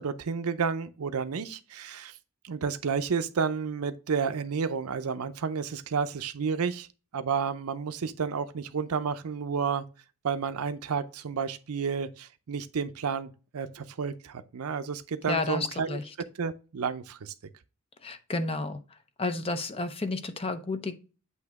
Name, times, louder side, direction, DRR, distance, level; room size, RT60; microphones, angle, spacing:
voice 1, 0.0-2.2 2.4-6.9 7.1-9.9 10.2-16.0 16.4-17.3, right 6 dB, 75° right, 0.6 m, -31 dB
voice 2, 15.3-16.0 18.0-18.8 19.2-21.0, left 3 dB, 25° left, 0.6 m, -31 dB
8.3 x 2.8 x 4.7 m
head